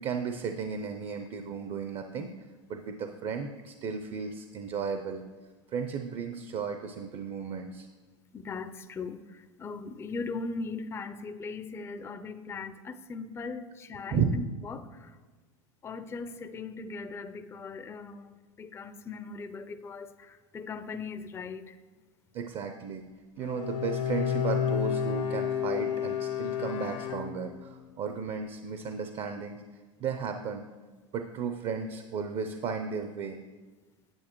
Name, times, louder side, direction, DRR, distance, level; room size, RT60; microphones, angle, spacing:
voice 1, 0.0-2.3 2.7-5.2 5.7-7.9 14.1-14.4 22.3-23.0 23.4-29.6 30.0-30.6 31.1-33.4, right 6 dB, 40° right, 7 dB, 0.5 m, -34 dB
voice 2, 8.3-15.1 15.8-18.3 18.6-21.7, left 4 dB, 15° left, 11 dB, 0.4 m, -39 dB
Bowed string instrument, 23.4-27.8, left 8 dB, 80° left, 0.9 m, -31 dB
8.8 x 8.0 x 3.0 m, 1.3 s
hypercardioid pair, 100°, 16 cm